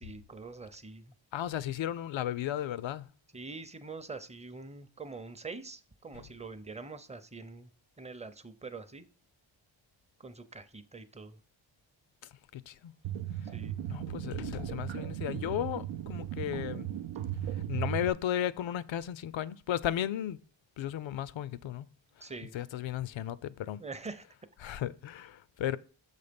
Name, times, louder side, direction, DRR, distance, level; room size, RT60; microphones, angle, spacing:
voice 1, 0.0-1.1 3.3-7.7 8.0-9.1 10.2-11.4 13.5-13.8 22.2-22.5 23.8-24.3, right 3 dB, 15° right, 0.6 m, -44 dB
voice 2, 1.3-3.1 12.5-12.9 13.9-16.9 17.7-20.4 20.8-21.9 22.5-23.8 24.6-25.8, left 11 dB, 75° left, 0.5 m, -34 dB
sound 1, 13.0-18.1, right 11 dB, 80° right, 0.5 m, -36 dB
6.4 x 4.2 x 5.1 m
cardioid pair, 70°, 46 cm